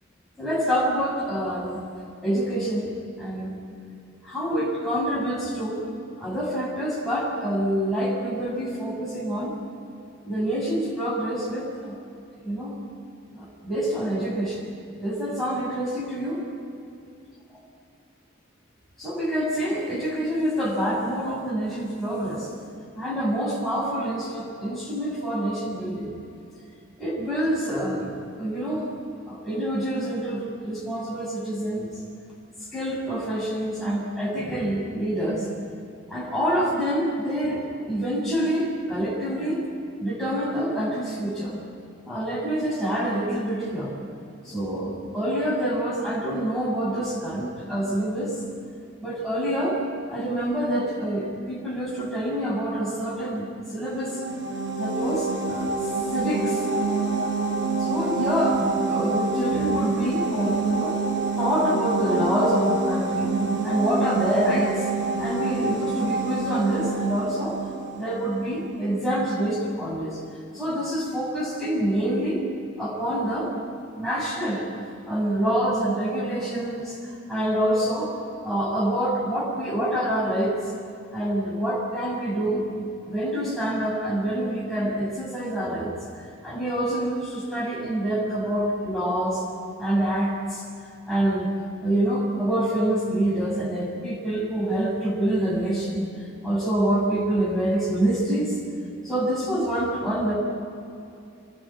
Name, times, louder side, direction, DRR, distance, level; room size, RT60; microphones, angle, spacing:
voice 1, 0.4-1.8 2.2-2.9 3.2-3.6 4.2-5.8 6.2-9.5 10.2-12.0 12.4-12.8 13.3-14.7 15.0-16.4 19.0-22.5 23.0-26.1 27.0-28.1 28.4-28.9 29.3-31.9 32.7-35.5 36.1-39.7 40.0-41.6 42.0-43.9 44.4-48.4 49.0-49.8 50.1-54.2 54.8-55.7 56.1-56.6 57.8-61.0 61.4-63.3 63.6-64.7 65.2-67.6 67.9-70.2 70.5-72.4 72.8-73.5 74.0-74.7 75.1-77.0 77.3-78.2 78.4-80.6 81.1-85.9 86.4-89.4 89.8-90.6 91.1-91.5 91.8-96.1 96.4-98.6 99.0-100.3, right 1 dB, ahead, -6 dB, 6.6 m, -26 dB
sound 1, 53.9-68.5, right 3 dB, 60° right, 6.4 m, -27 dB
26.5 x 20.0 x 8.8 m, 2.6 s
head